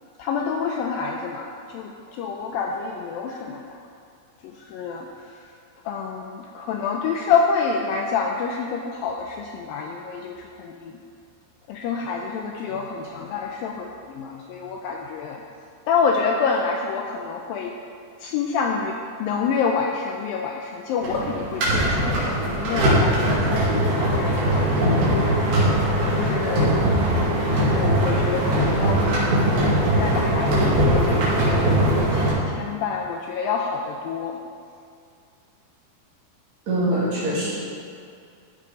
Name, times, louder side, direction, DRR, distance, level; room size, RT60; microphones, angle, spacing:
voice 1, 0.2-3.6 4.4-5.3 5.9-10.9 11.7-15.4 15.9-17.7 18.2-24.7 25.1-25.4 26.2-26.7 27.5-32.3 32.6-34.4, left 5 dB, 80° left, 2 dB, 2.1 m, -27 dB
sound 1, 21.0-32.3, right 1 dB, 70° right, 4.3 m, -21 dB
voice 2, 36.7-37.6, right 1 dB, 45° right, -8 dB, 3.7 m, -23 dB
13.0 x 6.5 x 5.3 m, 2.4 s
omnidirectional pair, 4.6 m